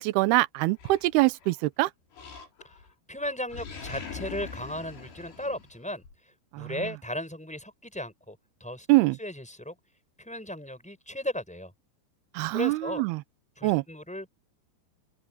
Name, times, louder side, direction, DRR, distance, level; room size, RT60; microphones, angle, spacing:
voice 1, 0.0-1.9 6.5-6.7 8.9-9.2 12.4-13.2 13.6-13.8, right 20 dB, 80° right, 2.6 m, -24 dB
Animal, 0.8-1.6 2.1-2.9 3.2-6.1, left 5 dB, 80° left, 7.8 m, -42 dB
voice 2, 3.1-6.0 6.5-8.9 9.2-9.7 10.2-11.7 12.5-13.0 13.6-14.3, left 1 dB, ahead, 6.2 m, -36 dB
open air
omnidirectional pair, 4.8 m